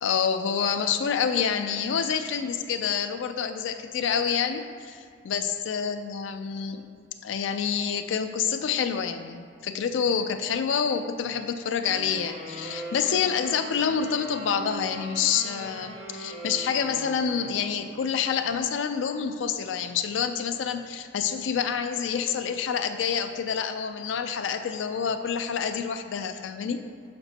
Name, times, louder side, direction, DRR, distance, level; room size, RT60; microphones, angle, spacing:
voice 1, 0.0-5.0 5.2-6.9 7.2-26.8, left 7 dB, 85° left, 8 dB, 0.4 m, -27 dB
sound 1, 11.8-18.2, right 2 dB, 45° right, 1.1 m, -40 dB
5.9 x 5.9 x 2.7 m, 2.1 s
head